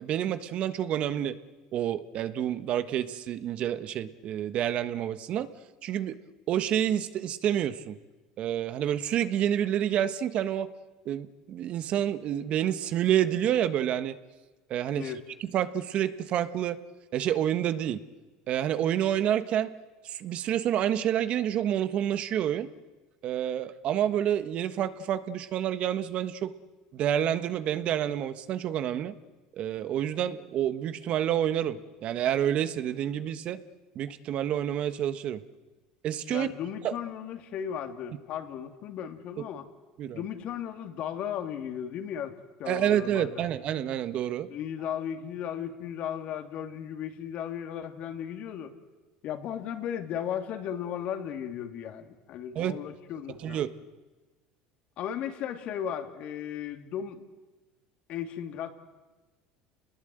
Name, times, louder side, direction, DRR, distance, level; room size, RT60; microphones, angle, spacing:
voice 1, 0.0-1.4 1.7-5.5 5.8-6.2 6.5-8.0 8.4-10.7 11.0-14.2 14.7-15.1 15.4-16.8 17.1-18.0 18.5-19.7 20.0-22.7 23.2-26.5 26.9-29.1 29.6-33.6 33.9-35.4 36.0-36.5 36.8-36.9 40.0-40.2 42.7-44.5 52.5-52.8 53.4-53.7, right 10 dB, 50° right, 11 dB, 1.4 m, -28 dB
voice 2, 36.3-39.7 40.1-43.5 44.5-48.7 49.2-53.6 55.0-57.2 58.1-58.7, left 9 dB, 55° left, 5 dB, 2.9 m, -36 dB
28.5 x 20.5 x 8.0 m, 1.2 s
supercardioid pair, 95°, 2 cm